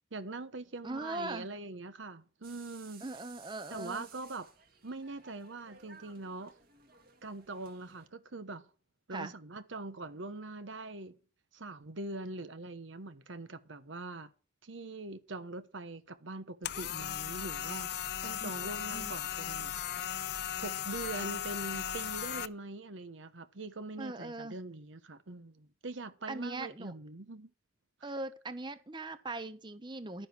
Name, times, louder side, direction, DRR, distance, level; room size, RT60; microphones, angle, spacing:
voice 1, 0.1-3.1 3.7-4.5 4.8-6.5 7.2-8.6 9.1-11.2 11.5-14.3 14.6-17.9 18.2-19.7 20.6-27.5 28.0-28.1, right 2 dB, 85° right, 1.1 m, -43 dB
voice 2, 0.8-1.5 3.0-4.1 9.1-9.3 18.4-19.1 24.0-24.6 26.3-26.9 28.0-30.3, right 2 dB, 25° right, 0.8 m, -40 dB
sound 1, 2.4-8.1, right 6 dB, 50° right, 2.2 m, -58 dB
sound 2, 16.6-22.5, left 10 dB, 55° left, 0.5 m, -37 dB
11.0 x 10.0 x 4.5 m
head